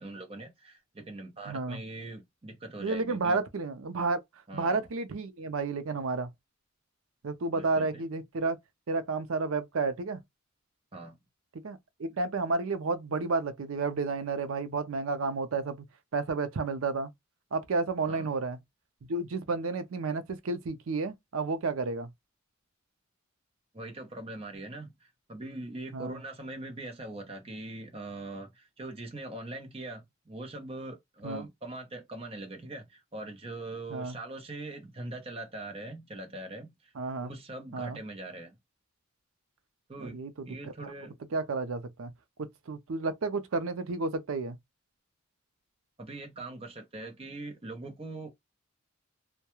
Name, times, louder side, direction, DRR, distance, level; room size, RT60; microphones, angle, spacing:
voice 1, 0.0-3.4 4.5-4.9 7.5-8.0 10.9-11.2 18.1-18.3 23.7-36.9 37.2-38.6 39.9-40.2 40.5-41.2 46.0-48.3, right 2 dB, 25° right, 0.7 m, -42 dB
voice 2, 1.5-1.8 2.8-4.2 4.5-6.3 7.2-8.6 8.9-10.2 11.6-15.9 16.1-17.1 17.5-18.6 19.0-22.1 25.9-26.2 31.2-31.5 33.9-34.2 37.0-37.3 37.7-38.0 40.0-40.5 40.8-40.9 41.3-42.1 42.4-44.6, right 3 dB, 75° right, 0.5 m, -31 dB
2.3 x 2.2 x 2.9 m
head